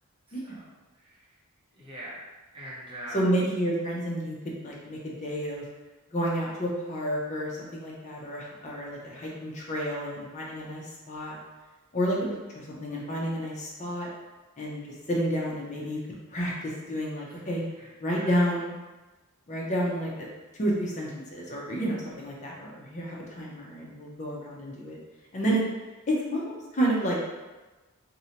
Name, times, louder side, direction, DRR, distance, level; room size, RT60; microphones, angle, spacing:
voice 1, 0.3-0.6 1.0-1.2 1.7-2.2 2.5-3.2 9.1-9.3 17.3-17.4 17.8-17.9 18.1-18.3, right 1 dB, 25° right, -7 dB, 0.7 m, -42 dB
voice 2, 3.1-5.7 6.1-11.4 11.9-12.3 12.5-14.1 14.6-14.8 15.1-16.0 16.3-17.6 18.0-18.7 19.5-20.3 20.6-25.0 25.3-25.6 26.1-27.2, equal, 35° left, -3 dB, 0.5 m, -30 dB
2.6 x 2.1 x 2.8 m, 1.2 s
head